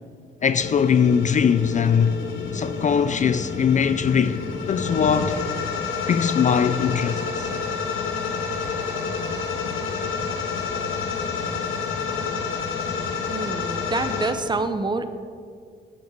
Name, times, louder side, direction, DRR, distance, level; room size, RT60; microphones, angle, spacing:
voice 1, 0.4-2.2 2.5-5.4 6.1-7.5, left 7 dB, 40° left, 0.4 m, -21 dB
sound 1, 0.6-14.3, left 5 dB, 80° left, 1.4 m, -29 dB
voice 2, 13.3-15.1, right 3 dB, 20° right, 0.7 m, -27 dB
8.6 x 6.5 x 6.8 m
cardioid pair, 90°, 20 cm